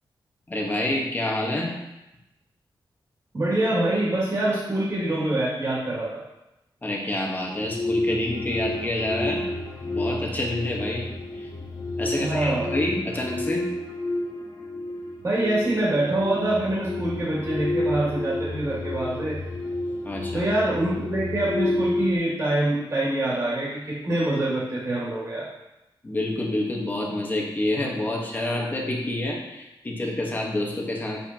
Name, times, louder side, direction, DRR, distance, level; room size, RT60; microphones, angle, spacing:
voice 1, 0.5-1.7 6.8-9.4 9.8-11.0 12.0-13.7 20.0-20.5 26.0-31.2, left 1 dB, 20° left, -1 dB, 1.4 m, -28 dB
voice 2, 3.3-6.2 12.1-12.8 15.2-19.4 20.3-25.5, right 1 dB, 35° right, -8 dB, 2.5 m, -25 dB
sound 1, 7.4-22.1, left 2 dB, 70° left, 2.1 m, -30 dB
7.9 x 6.7 x 3.0 m, 0.94 s
wide cardioid pair, 145°, 9 cm